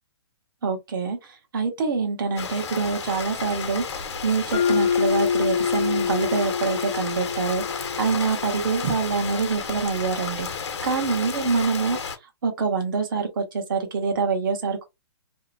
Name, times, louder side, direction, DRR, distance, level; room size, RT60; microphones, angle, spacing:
voice 1, 0.6-12.0 12.4-14.8, right 5 dB, 50° right, 1.0 m, -26 dB
Rain, 2.4-12.2, left 6 dB, 75° left, 0.9 m, -32 dB
Mallet percussion, 4.5-8.6, left 7 dB, 15° left, 0.5 m, -26 dB
2.8 x 2.1 x 2.5 m
hypercardioid pair, 165°, 15 cm